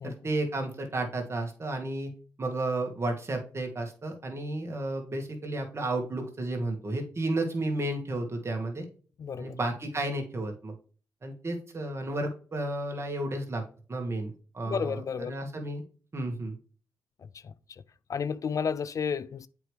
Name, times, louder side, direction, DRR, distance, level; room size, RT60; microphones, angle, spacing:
voice 1, 0.0-2.1 2.4-8.9 9.4-10.7 11.2-13.6 13.9-15.8 16.1-16.6, right 2 dB, 40° right, 1.9 m, -32 dB
voice 2, 9.2-9.6 14.7-15.4 17.2-17.5 18.1-19.5, left 6 dB, 50° left, 0.3 m, -32 dB
7.6 x 4.8 x 3.2 m
cardioid pair, 60°, 7 cm